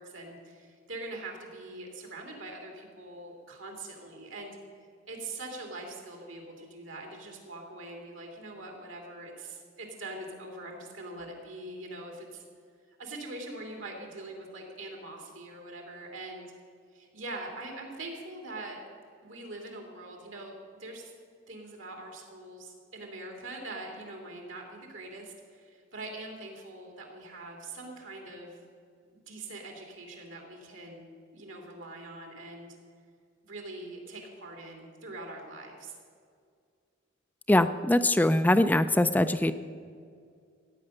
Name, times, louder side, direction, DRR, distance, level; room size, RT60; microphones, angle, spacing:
voice 1, 0.0-4.6 5.1-12.4 13.0-16.5 16.9-18.8 19.2-21.1 21.5-28.6 29.1-32.7 33.4-36.0, right 2 dB, 80° right, 1 dB, 2.8 m, -43 dB
voice 2, 37.5-39.5, left 1 dB, 10° left, 10 dB, 0.3 m, -22 dB
15.0 x 8.8 x 6.5 m, 2.2 s
head